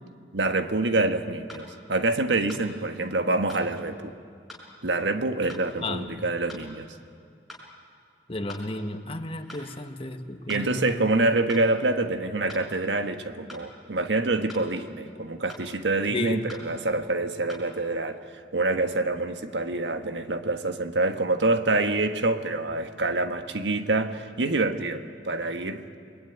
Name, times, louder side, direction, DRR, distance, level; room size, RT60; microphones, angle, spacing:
voice 1, 0.3-4.1 4.8-6.9 10.5-18.2 18.5-25.8, right 2 dB, 90° right, 1.4 m, -26 dB
sound 1, 1.5-1.7 2.5-2.7 3.5-3.7 4.5-4.7 5.5-5.7 6.5-6.7 7.5-7.7 8.5-8.7 9.5-9.7 10.5-10.7 11.5-11.7 12.5-12.7 13.5-13.7 14.5-14.7 15.5-15.7 16.5-16.7 17.5-17.7, left 1 dB, ahead, 5.7 m, -44 dB
voice 2, 5.8-6.2 8.3-11.1 16.1-16.5, left 2 dB, 30° left, 1.4 m, -33 dB
29.0 x 21.5 x 9.4 m
head